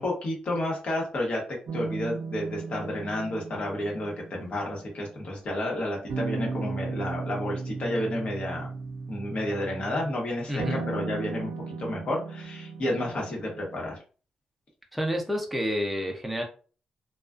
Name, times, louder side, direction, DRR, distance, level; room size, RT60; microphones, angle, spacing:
voice 1, 0.0-1.4 1.7-8.7 9.1-11.5 11.8-13.9, left 1 dB, 55° left, -1 dB, 1.0 m, -31 dB
sound 1, 1.7-5.4 6.1-10.1 10.6-14.0, right 4 dB, 75° right, 0.4 m, -36 dB
voice 2, 10.5-10.8 14.9-16.4, equal, ahead, 1 dB, 0.5 m, -29 dB
2.3 x 2.3 x 2.4 m, 0.38 s
cardioid pair, 100°, 3 cm